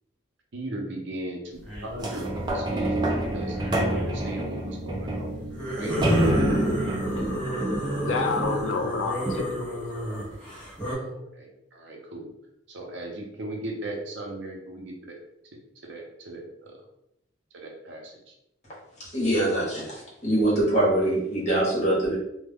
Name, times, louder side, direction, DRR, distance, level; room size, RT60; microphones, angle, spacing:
voice 1, 0.5-5.4 5.7-6.0 10.8-12.3 12.7-15.2 15.8-16.8 17.5-18.3, right 1 dB, 70° right, 1 dB, 0.6 m, -38 dB
sound 1, 1.6-2.0 3.5-4.1 5.5-10.9, equal, 5° left, 0.8 m, -28 dB
sound 2, 2.0-8.8 9.4-9.5, right 1 dB, 25° right, 0.4 m, -29 dB
voice 2, 8.0-10.1, left 4 dB, 75° left, 4 dB, 0.3 m, -30 dB
voice 3, 19.0-22.1, right 1 dB, 35° left, -5 dB, 0.9 m, -24 dB
2.2 x 2.1 x 3.3 m, 0.84 s
head